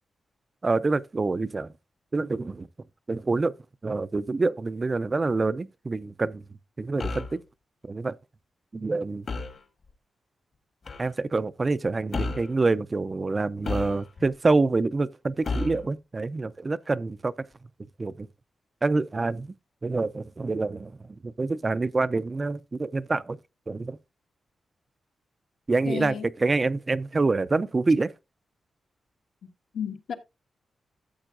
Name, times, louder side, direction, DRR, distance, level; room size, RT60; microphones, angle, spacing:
voice 1, 0.6-1.7 2.1-2.7 3.1-3.5 3.8-6.4 6.8-7.4 7.9-8.1 8.7-9.3 11.0-17.3 18.0-18.3 18.8-19.5 19.8-20.9 21.2-23.4 23.7-24.0 25.7-28.1, right 3 dB, 25° right, 0.4 m, -26 dB
sound 1, 7.0-7.4 9.3-9.6 10.9-11.1 12.1-12.5 13.6-14.3 15.4-15.9, left 3 dB, 45° left, 1.3 m, -32 dB
voice 2, 25.8-26.3 29.7-30.1, left 8 dB, 75° left, 1.5 m, -32 dB
13.5 x 7.8 x 2.5 m
wide cardioid pair, 155°, 0 cm